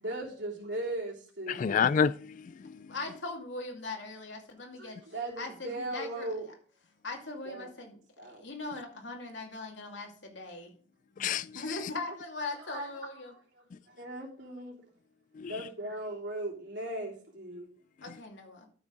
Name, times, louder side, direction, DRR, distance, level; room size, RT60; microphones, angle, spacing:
voice 1, 0.0-1.6 4.8-6.5 7.4-7.7 8.2-8.5 12.1-12.2 12.6-14.8 15.4-17.7, right 1 dB, 70° right, 3.3 m, -38 dB
voice 2, 1.5-2.9 11.2-11.8 15.4-15.5, left 7 dB, 45° left, 0.3 m, -29 dB
voice 3, 2.9-5.0 5.4-6.5 7.0-7.9 8.2-10.7 11.5-13.3 18.0-18.7, left 3 dB, 80° left, 2.5 m, -40 dB
13.0 x 6.2 x 3.8 m
head